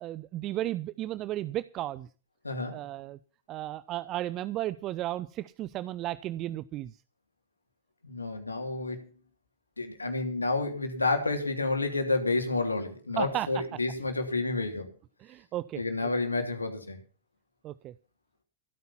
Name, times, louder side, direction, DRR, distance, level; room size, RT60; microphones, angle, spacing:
voice 1, 0.0-2.1 2.7-3.2 3.5-6.9 13.2-13.6 15.2-15.8 17.6-17.9, right 14 dB, 35° right, 0.6 m, -34 dB
voice 2, 2.4-2.8 8.0-9.1 9.8-14.9 15.8-17.0, left 3 dB, 80° left, 3.1 m, -30 dB
16.5 x 9.5 x 5.8 m
figure-of-eight pair, 90°, 0 cm